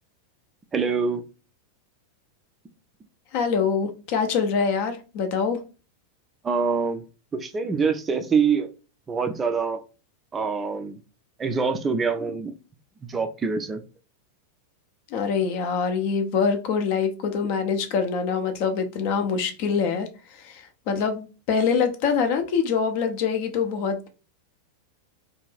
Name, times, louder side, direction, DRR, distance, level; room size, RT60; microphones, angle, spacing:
voice 1, 0.7-1.2 6.4-7.0 7.3-8.7 9.1-9.8 10.3-11.0 11.4-12.5 13.1-13.8, right 5 dB, 20° right, 0.3 m, -25 dB
voice 2, 3.3-5.6 15.1-24.1, left 6 dB, 45° left, 0.5 m, -25 dB
2.5 x 2.2 x 3.2 m
figure-of-eight pair, 90°, 0 cm